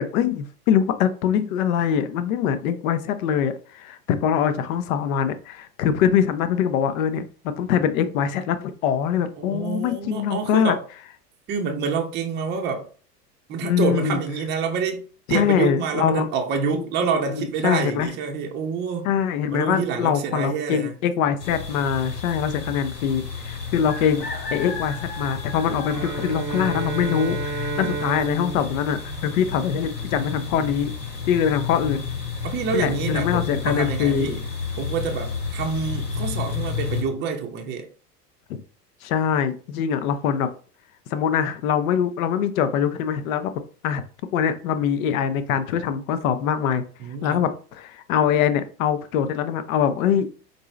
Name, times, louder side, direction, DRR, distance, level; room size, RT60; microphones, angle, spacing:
voice 1, 0.0-10.7 13.6-14.2 15.3-16.2 16.7-16.9 17.3-18.1 19.0-30.9 31.3-32.1 32.7-34.4 38.5-38.6 39.0-40.5 41.1-43.5 43.8-44.0 44.3-46.8 47.2-50.3, left 8 dB, 55° left, 0.7 m, -23 dB
voice 2, 9.4-10.8 11.5-12.9 13.5-15.0 15.3-19.1 19.5-20.9 30.6-30.7 32.4-34.4 34.8-37.9 47.0-47.5, right 6 dB, 20° right, 0.6 m, -27 dB
sound 1, 21.4-37.0, left 6 dB, 80° left, 1.5 m, -31 dB
Bowed string instrument, 25.8-30.2, right 4 dB, 85° right, 0.8 m, -32 dB
4.4 x 2.6 x 3.1 m
figure-of-eight pair, 90°, 49 cm